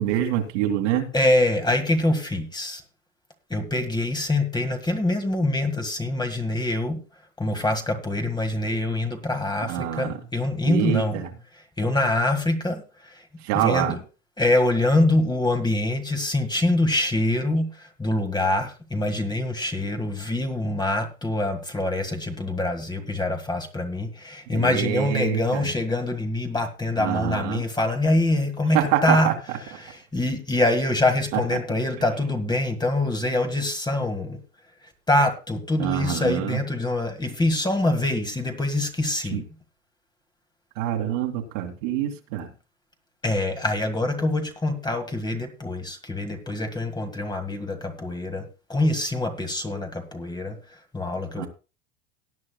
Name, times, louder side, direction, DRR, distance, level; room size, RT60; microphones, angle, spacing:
voice 1, 0.0-1.1 9.7-10.2 10.7-11.3 13.4-14.0 24.5-25.7 27.0-27.6 28.7-29.3 35.8-36.6 39.3-39.4 40.8-42.5 51.4-51.5, right 11 dB, 65° right, 2.4 m, -25 dB
voice 2, 1.1-2.8 3.5-7.0 7.4-11.2 11.8-13.3 13.5-14.0 14.4-29.3 29.6-34.4 35.1-39.5 43.2-50.6 50.9-51.5, left 2 dB, 10° left, 1.7 m, -25 dB
18.5 x 9.8 x 2.3 m
hypercardioid pair, 105°, 39 cm